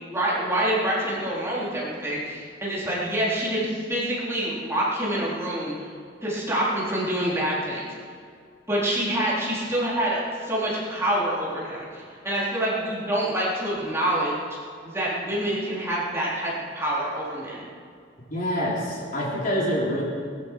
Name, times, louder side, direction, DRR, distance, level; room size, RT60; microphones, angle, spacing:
voice 1, 0.1-5.7 6.2-7.9 8.7-14.3 14.8-17.6, right 1 dB, 15° right, -7 dB, 3.7 m, -26 dB
voice 2, 18.3-20.0, equal, 50° left, -5 dB, 3.6 m, -26 dB
19.0 x 13.0 x 4.6 m, 2.2 s
head